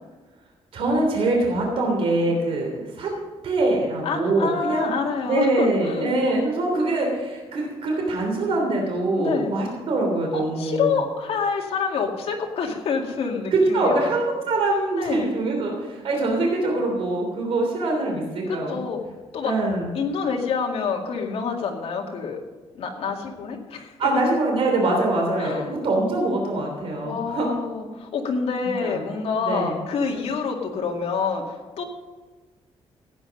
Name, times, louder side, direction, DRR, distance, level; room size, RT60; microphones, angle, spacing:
voice 1, 0.7-3.1 3.4-4.9 5.3-10.9 13.5-18.8 19.4-19.9 24.0-27.5 28.8-29.1 29.4-29.8, right 2 dB, 60° right, 0 dB, 3.2 m, -23 dB
voice 2, 4.0-6.1 9.2-9.5 10.3-14.1 15.0-15.3 18.5-19.0 19.3-19.5 19.9-22.4 22.7-23.9 25.4-25.7 27.0-31.8, left 5 dB, 65° left, 1 dB, 2.2 m, -27 dB
15.5 x 9.0 x 5.3 m, 1.3 s
cardioid pair, 150°, 11 cm